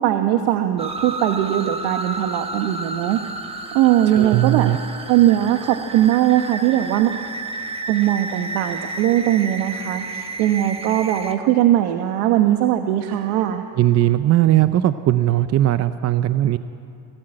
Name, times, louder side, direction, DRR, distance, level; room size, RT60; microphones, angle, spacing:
voice 1, 0.0-3.2 3.7-4.7 5.1-7.1 7.9-13.6, right 12 dB, 85° right, 6 dB, 1.3 m, -19 dB
sound 1, 0.8-11.4, right 3 dB, 10° right, 1.2 m, -32 dB
voice 2, 4.1-4.8 13.8-16.6, right 13 dB, 35° right, 11 dB, 0.5 m, -18 dB
22.5 x 17.5 x 8.9 m, 2.7 s
cardioid pair, 140°, 48 cm